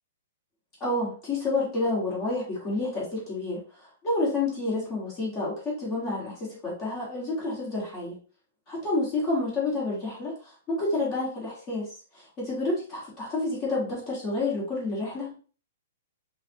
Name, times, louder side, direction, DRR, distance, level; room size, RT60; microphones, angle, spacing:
voice 1, 0.8-3.6 4.0-8.2 8.7-11.9 12.2-15.3, left 2 dB, 25° left, -6 dB, 2.3 m, -29 dB
5.5 x 2.7 x 3.0 m, 0.39 s
hypercardioid pair, 145°, 0 cm